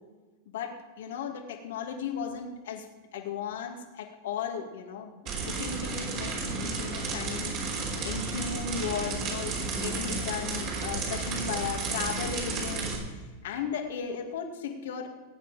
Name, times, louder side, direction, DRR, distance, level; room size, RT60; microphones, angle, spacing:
voice 1, 1.0-2.8 3.1-12.9 13.4-15.1, left 7 dB, 70° left, 3 dB, 2.3 m, -36 dB
sound 1, 5.3-13.0, right 4 dB, 45° right, 5.0 m, -32 dB
19.5 x 8.8 x 5.1 m, 1.3 s
hypercardioid pair, 100°, 0 cm